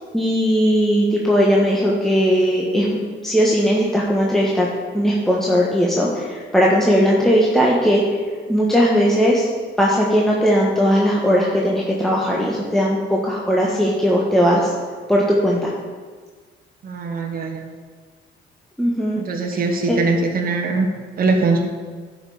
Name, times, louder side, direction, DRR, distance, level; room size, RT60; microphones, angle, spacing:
voice 1, 0.1-4.7 4.9-8.0 8.5-9.5 9.8-14.7 15.1-15.7 18.8-19.2 19.9-20.0, equal, ahead, -4 dB, 1.3 m, -18 dB
voice 2, 16.8-17.7 19.2-20.9 21.2-21.6, right 3 dB, 50° right, 2 dB, 1.2 m, -21 dB
11.5 x 5.7 x 5.0 m, 1.5 s
cardioid pair, 90°, 20 cm